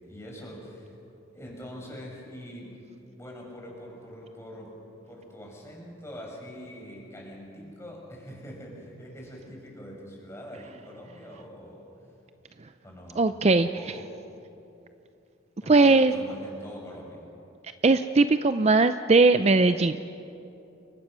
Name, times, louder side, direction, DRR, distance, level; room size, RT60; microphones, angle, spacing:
voice 1, 0.0-0.9 1.3-2.8 3.2-4.8 5.1-11.9 12.8-13.3 13.5-14.1 15.6-17.3, equal, 15° left, -2 dB, 5.7 m, -43 dB
voice 2, 13.2-13.7 15.7-16.1 17.8-20.1, right 3 dB, 30° right, 10 dB, 0.5 m, -19 dB
29.5 x 23.5 x 6.2 m, 2.8 s
head